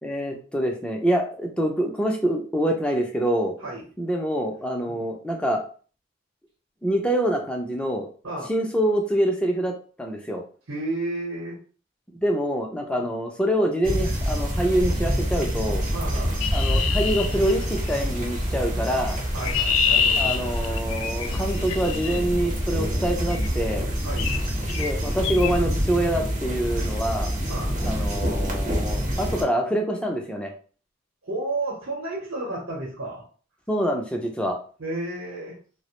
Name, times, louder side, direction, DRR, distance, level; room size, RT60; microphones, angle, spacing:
voice 1, 0.0-3.5 4.0-5.6 6.8-8.1 8.5-9.7 10.0-10.4 12.2-15.8 16.5-19.2 20.2-23.9 24.7-27.3 27.9-30.5 33.7-34.6, right 1 dB, 5° left, 1 dB, 0.4 m, -25 dB
voice 2, 10.7-11.6 13.0-13.1 15.9-16.5 19.3-20.5 24.0-24.6 27.5-27.8 31.2-33.2 34.8-35.6, right 2 dB, 80° right, -3 dB, 0.9 m, -32 dB
sound 1, 13.8-29.4, equal, 40° right, 0.6 m, -26 dB
Chirp tweet, 16.4-18.0 19.1-22.2 23.3-23.6 24.2-24.4 24.7-24.9 25.2-25.5, left 7 dB, 85° left, 0.4 m, -26 dB
2.4 x 2.0 x 2.9 m, 0.39 s
head